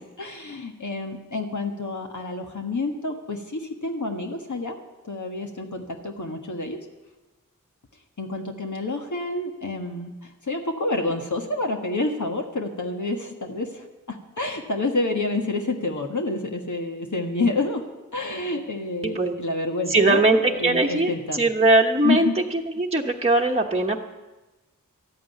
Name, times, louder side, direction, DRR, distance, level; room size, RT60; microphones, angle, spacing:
voice 1, 0.0-4.8 5.0-6.8 8.2-21.4 22.0-22.3, left 2 dB, 60° left, 2 dB, 1.5 m, -28 dB
voice 2, 19.0-19.4 19.9-24.0, right 2 dB, 20° right, -1 dB, 1.2 m, -20 dB
13.5 x 8.6 x 9.4 m, 1.1 s
cardioid pair, 40°, 33 cm